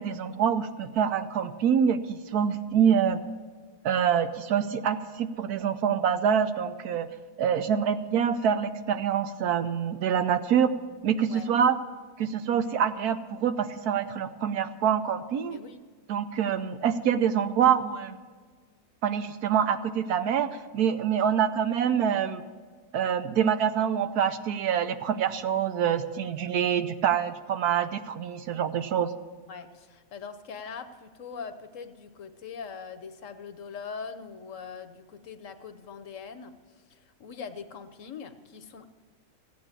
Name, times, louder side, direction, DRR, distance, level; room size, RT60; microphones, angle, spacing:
voice 1, 0.0-3.2 3.8-7.1 7.4-10.7 11.0-11.8 12.2-15.6 16.1-18.2 19.0-22.4 22.9-29.1, right 8 dB, 75° right, 10 dB, 1.2 m, -26 dB
voice 2, 11.3-11.6 15.5-15.8 29.5-38.9, left 6 dB, 60° left, 10 dB, 1.1 m, -42 dB
15.0 x 9.0 x 7.3 m, 1.5 s
omnidirectional pair, 1.7 m